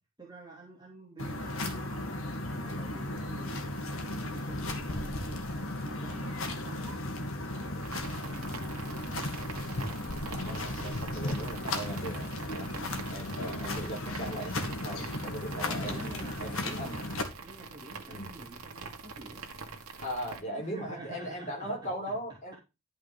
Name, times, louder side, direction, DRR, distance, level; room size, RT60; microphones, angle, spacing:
voice 1, 0.2-7.2 7.5-9.4 12.7-13.1 15.9-16.8 17.4-19.4 20.6-22.2, right 2 dB, 20° right, -4 dB, 2.8 m, -49 dB
sound 1, 1.2-17.2, left 1 dB, 70° left, 2.1 m, -35 dB
sound 2, 7.8-20.4, right 4 dB, 90° right, 1.9 m, -44 dB
voice 2, 10.3-12.7 13.1-16.0 16.4-17.0 18.1-18.3 20.0-22.6, equal, 30° left, 0 dB, 4.0 m, -39 dB
11.5 x 5.2 x 5.3 m, 0.26 s
head